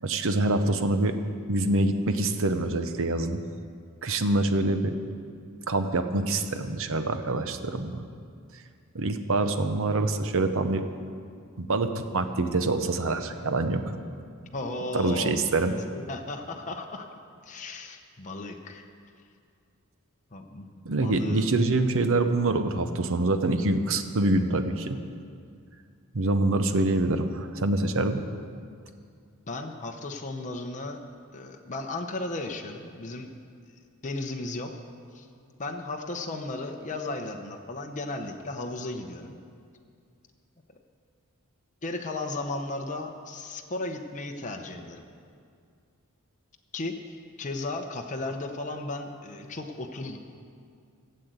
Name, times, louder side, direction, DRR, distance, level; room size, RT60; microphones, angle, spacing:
voice 1, 0.0-1.1 1.5-3.4 4.0-5.0 5.7-8.0 8.9-10.8 11.6-13.9 14.9-15.7 20.8-25.0 26.1-28.2, right 2 dB, 65° right, 8 dB, 0.9 m, -25 dB
voice 2, 14.5-15.4 15.6-17.1 17.4-18.8 20.3-21.5 29.5-31.0 31.3-33.3 34.0-34.7 35.1-35.3 35.6-39.4 41.8-45.0 46.7-50.2, left 2 dB, 35° left, 3 dB, 0.8 m, -35 dB
14.5 x 7.7 x 8.1 m, 2.3 s
head